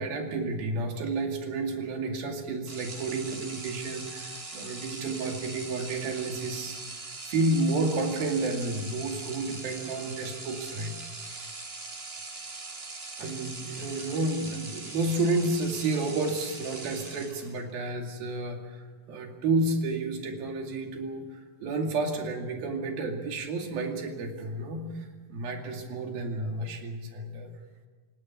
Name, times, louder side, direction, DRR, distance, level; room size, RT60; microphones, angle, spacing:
voice 1, 0.0-6.8 7.3-10.9 11.2-11.5 13.2-27.5, right 2 dB, 85° right, 3 dB, 4.2 m, -31 dB
sound 1, 2.6-17.7, right 3 dB, 25° right, 1.3 m, -41 dB
29.5 x 17.0 x 7.2 m, 1.4 s
omnidirectional pair, 4.1 m